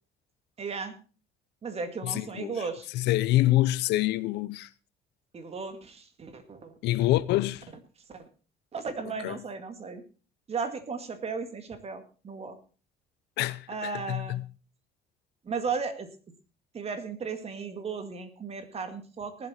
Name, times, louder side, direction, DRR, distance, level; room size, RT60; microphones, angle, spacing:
voice 1, 0.6-0.9 1.6-2.9 5.3-6.7 8.1-8.2 8.7-10.0 10.5-12.6 13.7-14.4 15.4-16.1 16.7-19.5, right 5 dB, 35° right, 2.1 m, -35 dB
voice 2, 2.0-2.6 2.9-4.7 6.8-7.7 9.2-9.4 13.4-14.4, left 16 dB, 85° left, 0.7 m, -26 dB
19.0 x 7.9 x 4.3 m
cardioid pair, 110°, 17 cm